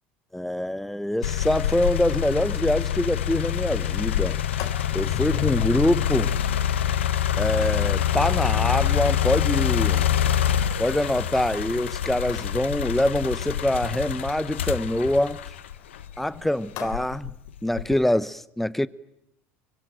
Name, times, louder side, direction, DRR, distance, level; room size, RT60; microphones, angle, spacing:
voice 1, 0.3-4.4 4.9-6.3 7.4-10.1 10.8-15.4 16.2-17.3 17.6-18.9, left 1 dB, 5° left, 0.9 m, -25 dB
sound 1, 1.2-16.3 16.8-18.1, left 10 dB, 90° left, 1.1 m, -26 dB
Sliding door, 4.3-11.7 12.2-12.7 14.7-17.0, left 9 dB, 60° left, 3.1 m, -40 dB
24.0 x 22.5 x 9.1 m
hypercardioid pair, 80°, 6 cm